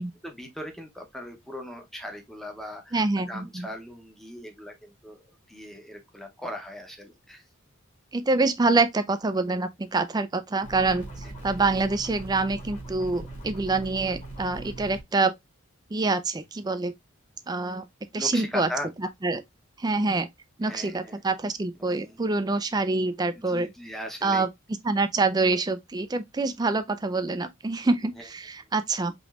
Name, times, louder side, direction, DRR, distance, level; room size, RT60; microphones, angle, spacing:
voice 1, 0.2-5.2 5.5-7.4 18.1-18.9 20.6-21.2 21.8-22.2 23.3-24.5 28.2-28.3, left 1 dB, ahead, 0.8 m, -39 dB
voice 2, 2.9-3.7 8.1-11.0 11.4-15.3 15.9-16.9 17.5-17.9 18.1-18.7 19.0-19.4 19.8-20.3 20.6-23.7 24.2-24.5 24.8-29.1, right 3 dB, 20° right, 0.4 m, -26 dB
sound 1, 10.6-15.0, right 2 dB, 35° left, 2.2 m, -40 dB
5.1 x 3.0 x 2.4 m
head